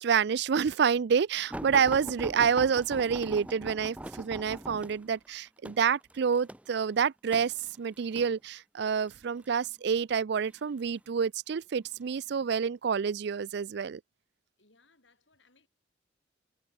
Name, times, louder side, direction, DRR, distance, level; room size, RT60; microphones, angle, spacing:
voice 1, 0.0-14.0, right 6 dB, 60° right, 0.4 m, -28 dB
sound 1, 1.5-8.3 9.1-9.5 10.4-11.1 11.8-12.0 12.4-12.5, right 1 dB, 5° right, 0.6 m, -42 dB
voice 2, 14.6-15.7, left 3 dB, 70° left, 7.2 m, -66 dB
head